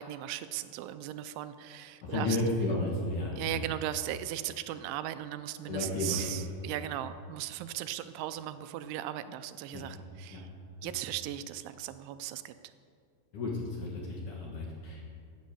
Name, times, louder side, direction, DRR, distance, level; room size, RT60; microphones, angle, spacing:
voice 1, 0.0-2.4 3.4-10.5 10.8-12.5, right 13 dB, 85° right, 11 dB, 2.9 m, -37 dB
voice 2, 2.0-3.7 5.7-6.3 9.7-9.8 10.3-10.4 10.8-10.9 13.3-15.1, left 2 dB, 55° left, -2 dB, 2.4 m, -33 dB
16.0 x 8.7 x 6.8 m, 2.2 s
omnidirectional pair, 5.4 m